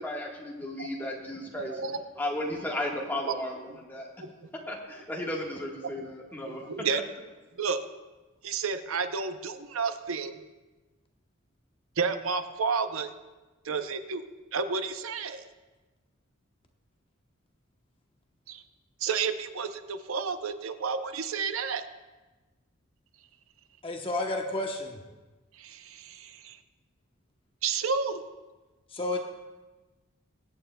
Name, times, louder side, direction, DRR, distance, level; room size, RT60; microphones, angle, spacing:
voice 1, 0.0-1.7 2.2-3.6 3.9-4.1 4.7-6.6, left 1 dB, 10° left, -2 dB, 1.4 m, -34 dB
voice 2, 1.5-2.0 3.1-3.3 3.7-3.8 4.2-4.5 6.5-7.0 7.6-7.8 8.4-10.4 12.0-13.1 13.6-15.4 18.5-18.6 19.0-21.8 25.5-26.6 27.6-28.2, right 5 dB, 80° right, 9 dB, 0.6 m, -31 dB
voice 3, 23.8-25.0 28.9-29.2, left 2 dB, 25° left, 2 dB, 0.9 m, -31 dB
22.5 x 8.8 x 2.2 m, 1.2 s
head